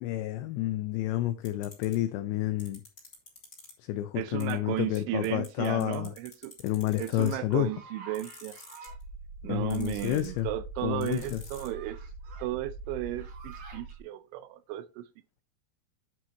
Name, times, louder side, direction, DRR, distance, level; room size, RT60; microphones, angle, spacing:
voice 1, 0.0-2.8 3.9-6.1 6.6-7.7 9.4-10.5 10.8-11.4, left 14 dB, 80° left, 2.6 m, -30 dB
sound 1, 1.4-1.9 2.6-3.7 4.4-4.5 4.9-5.0 5.2-7.5 8.1-9.0 9.7-10.4 11.0-11.7, left 4 dB, 20° left, 3.3 m, -48 dB
voice 2, 4.2-6.5 7.0-8.6 9.4-12.0 12.4-15.1, right 15 dB, 80° right, 2.9 m, -34 dB
sound 2, 7.0-9.0 9.7-10.5 11.2-12.5 12.9-13.9, right 5 dB, 60° right, 5.1 m, -51 dB
sound 3, 8.9-14.0, right 3 dB, 35° left, 2.8 m, -44 dB
9.5 x 8.8 x 2.9 m
omnidirectional pair, 5.7 m